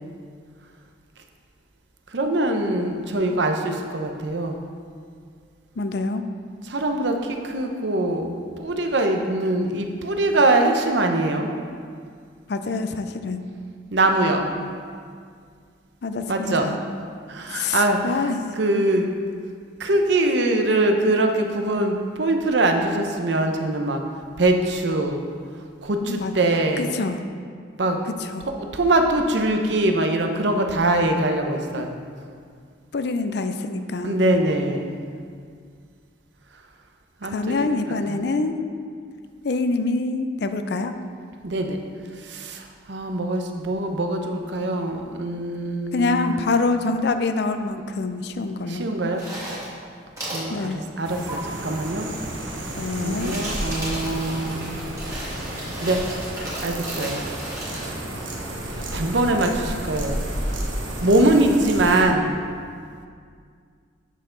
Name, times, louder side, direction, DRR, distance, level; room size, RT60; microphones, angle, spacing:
voice 1, 2.1-4.6 6.7-11.5 13.9-14.5 16.3-16.7 17.3-18.0 18.6-19.1 19.8-24.0 24.4-25.2 25.8-26.9 27.8-28.0 28.7-32.0 34.0-35.1 37.2-38.3 41.4-41.8 42.2-46.3 48.7-49.3 50.3-52.1 53.0-54.8 55.8-56.0 56.6-57.2 58.9-60.2 61.0-62.4, right 2 dB, 70° right, 4 dB, 0.7 m, -23 dB
voice 2, 5.8-6.2 12.5-13.4 16.0-16.8 17.5-18.4 26.0-26.3 26.8-27.2 28.3-28.4 31.8-31.9 32.9-34.2 37.3-38.6 39.4-41.0 45.9-48.9 50.5-50.8 52.7-53.4, left 3 dB, 60° left, 8 dB, 0.5 m, -25 dB
sound 1, 49.1-49.8 50.2-50.5 51.3-51.4 53.0-57.9, right 1 dB, 15° right, 2.0 m, -34 dB
sound 2, 51.0-62.0, right 1 dB, 85° right, 1.2 m, -32 dB
8.2 x 6.7 x 3.8 m, 2.1 s
head